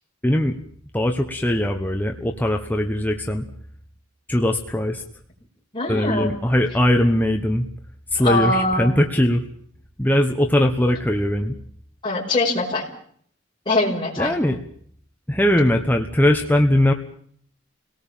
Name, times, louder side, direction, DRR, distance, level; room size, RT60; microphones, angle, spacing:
voice 1, 0.2-0.6 0.9-3.4 4.3-5.0 5.9-7.7 8.1-9.4 10.0-11.5 14.2-14.6 15.3-16.9, left 1 dB, 10° left, 3 dB, 1.1 m, -20 dB
voice 2, 5.7-6.3 8.2-8.9 12.0-12.8 13.7-14.3, left 2 dB, 25° left, -3 dB, 5.4 m, -22 dB
26.5 x 18.0 x 7.4 m, 0.64 s
head